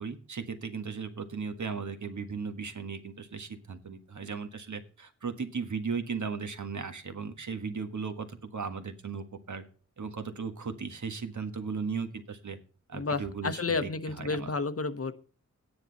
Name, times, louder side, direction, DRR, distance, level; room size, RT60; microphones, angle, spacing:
voice 1, 0.0-9.6 10.0-12.6 12.9-13.9 14.2-14.5, right 5 dB, 70° right, 8 dB, 1.6 m, -36 dB
voice 2, 12.9-15.1, left 4 dB, 50° left, 10 dB, 1.1 m, -31 dB
12.0 x 10.0 x 4.1 m, 0.39 s
wide cardioid pair, 90°, 31 cm